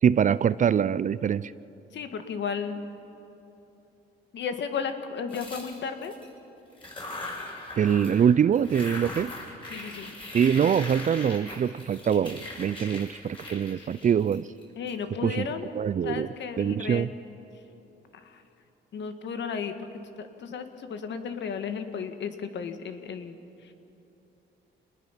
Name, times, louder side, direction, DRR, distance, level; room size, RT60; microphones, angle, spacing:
voice 1, 0.0-1.5 7.8-9.3 10.3-14.5 15.2-15.5 15.7-16.3 16.6-17.1, right 8 dB, 40° right, 18 dB, 0.5 m, -24 dB
voice 2, 1.9-2.8 4.3-6.1 8.9-9.0 9.7-10.2 13.8-13.9 14.8-15.7 16.0-17.1 18.1-18.4 18.9-19.9 20.2-23.7, left 6 dB, 65° left, 8 dB, 1.7 m, -34 dB
sound 1, 5.3-6.3 6.7-8.3 8.5-14.9, left 2 dB, 25° left, 6.9 m, -40 dB
27.0 x 20.0 x 5.8 m, 3.0 s
cardioid pair, 90°, 20 cm